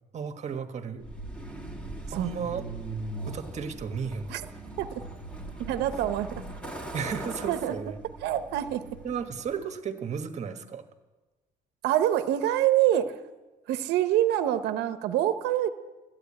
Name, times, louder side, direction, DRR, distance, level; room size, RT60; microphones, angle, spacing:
voice 1, 0.1-1.0 2.1-2.6 3.3-4.5 6.9-8.0 9.0-10.8, right 6 dB, 45° right, 6 dB, 1.4 m, -34 dB
Truck, 1.0-9.7, right 2 dB, 10° left, 1.9 m, -40 dB
voice 2, 5.6-6.4 7.5-7.8 8.2-9.0 11.8-13.1 13.7-15.7, right 12 dB, 85° right, 10 dB, 0.8 m, -26 dB
13.5 x 9.3 x 8.6 m, 1.2 s
cardioid pair, 110°, 17 cm